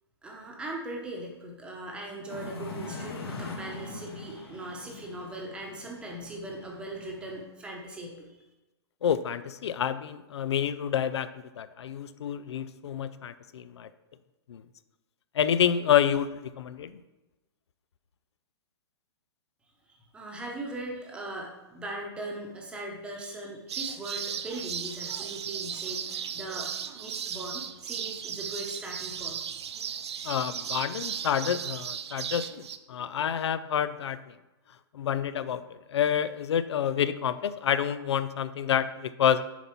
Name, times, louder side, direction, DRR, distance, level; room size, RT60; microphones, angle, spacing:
voice 1, 0.2-8.3 19.9-29.4, right 1 dB, 5° right, 0 dB, 0.9 m, -39 dB
sound 1, 2.3-7.4, left 3 dB, 65° left, 1.5 m, -42 dB
voice 2, 9.0-13.9 14.5-14.6 15.3-17.0 30.2-34.4 34.9-39.4, left 9 dB, 85° left, 13 dB, 0.5 m, -28 dB
sound 2, 23.7-32.8, right 8 dB, 80° right, 0.5 m, -36 dB
7.1 x 4.1 x 5.9 m, 1.1 s
hypercardioid pair, 165°, 14 cm